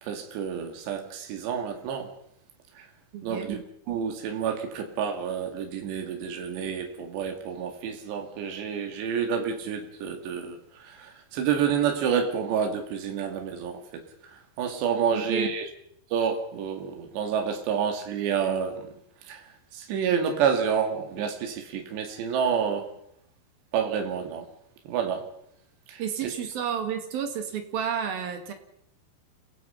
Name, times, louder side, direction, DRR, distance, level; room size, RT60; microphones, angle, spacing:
voice 1, 0.0-2.1 2.8-2.9 3.2-15.7 16.1-18.9 19.3-19.5 19.7-22.9 23.7-24.5 24.9-25.3 25.9-26.3, right 7 dB, 80° right, 4.3 m, -29 dB
voice 2, 3.1-3.5 15.1-15.5 26.0-28.5, right 8 dB, 65° right, 3.8 m, -31 dB
29.0 x 17.5 x 5.6 m
omnidirectional pair, 4.9 m